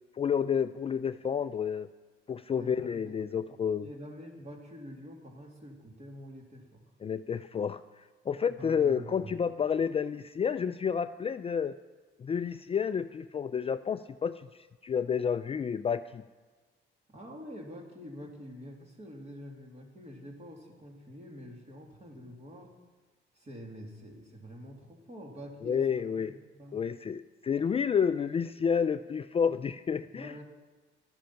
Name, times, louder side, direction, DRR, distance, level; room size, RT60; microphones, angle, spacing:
voice 1, 0.1-1.9 2.3-3.9 7.0-11.7 12.2-16.2 25.6-26.3 26.7-30.4, left 7 dB, 30° left, 11 dB, 0.3 m, -30 dB
voice 2, 2.5-6.8 8.5-9.4 17.1-22.7 23.3-26.8 30.1-30.4, equal, 35° right, 1 dB, 2.5 m, -47 dB
13.0 x 10.5 x 5.7 m, 1.3 s
cardioid pair, 90°, 20 cm